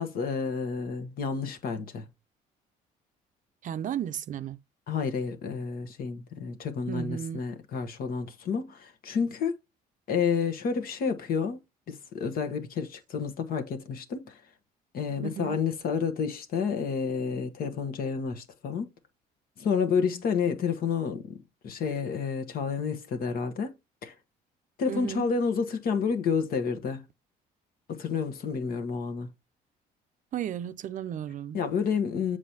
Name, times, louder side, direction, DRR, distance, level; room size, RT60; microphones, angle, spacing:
voice 1, 0.0-2.0 4.9-9.5 10.1-11.6 11.9-14.4 14.9-18.9 19.6-21.4 21.6-23.7 24.0-24.1 24.8-27.0 27.9-29.3 31.5-32.4, left 6 dB, 60° left, 1.2 m, -30 dB
voice 2, 3.6-4.6 6.9-7.4 15.2-15.6 24.9-25.3 30.3-31.6, right 10 dB, 50° right, 0.5 m, -34 dB
7.5 x 4.9 x 2.8 m
cardioid pair, 110°, 17 cm